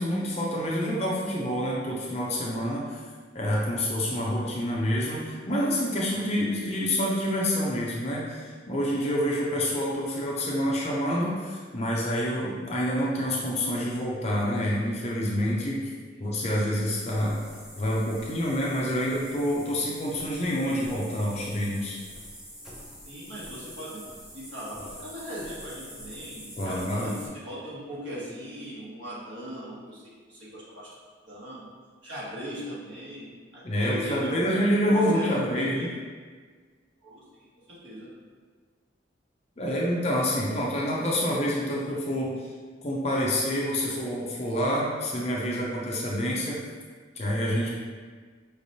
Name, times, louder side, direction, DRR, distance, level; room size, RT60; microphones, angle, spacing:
voice 1, 0.0-3.0 3.3-15.8 16.2-17.4 17.7-22.0 26.6-27.1 33.6-35.9 39.6-42.5 42.8-46.6 47.2-47.7, equal, 35° left, -4 dB, 0.5 m, -27 dB
sound 1, 16.8-27.3, equal, 5° right, 0.7 m, -45 dB
voice 2, 23.0-24.0 24.3-30.9 31.3-31.7 32.0-36.0 37.0-38.1, equal, 75° right, -8 dB, 1.4 m, -39 dB
5.0 x 3.3 x 2.7 m, 1.5 s
head